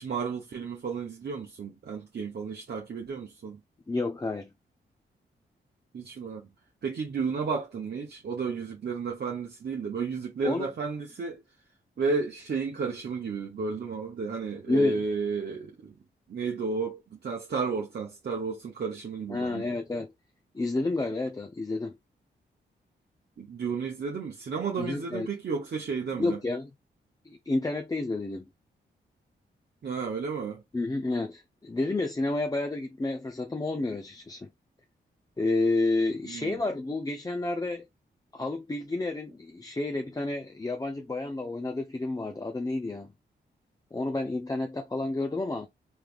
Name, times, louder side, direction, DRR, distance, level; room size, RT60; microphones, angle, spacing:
voice 1, 0.0-3.6 5.9-6.5 6.8-11.4 12.0-15.9 16.3-19.7 23.4-26.4 29.8-30.6 36.3-36.6, right 5 dB, 55° right, 0.8 m, -32 dB
voice 2, 3.9-4.5 10.4-10.7 14.7-15.0 19.3-20.1 20.5-22.0 24.8-25.3 26.2-26.7 27.2-28.5 30.7-34.5 35.4-37.8 38.3-43.1 43.9-45.7, left 2 dB, 20° left, 0.5 m, -30 dB
3.4 x 3.1 x 2.4 m
cardioid pair, 50°, 20 cm